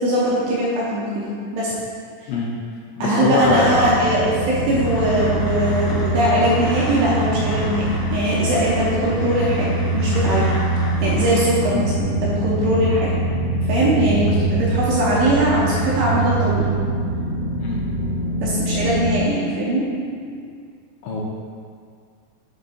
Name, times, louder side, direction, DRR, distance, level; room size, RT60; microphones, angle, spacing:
voice 1, 0.0-1.7 2.2-2.3 3.0-10.5 11.0-13.1 13.6-16.7 18.4-20.5, right 1 dB, 75° right, -6 dB, 2.6 m, -21 dB
voice 2, 3.0-4.0 11.7-11.9 17.6-17.8 21.0-21.2, left 3 dB, 85° left, -3 dB, 2.8 m, -22 dB
sound 1, 3.4-19.2, right 1 dB, 55° right, 1.7 m, -23 dB
sound 2, 4.8-11.4, left 1 dB, 65° left, 2.8 m, -35 dB
8.0 x 7.2 x 2.7 m, 2.2 s
omnidirectional pair, 5.7 m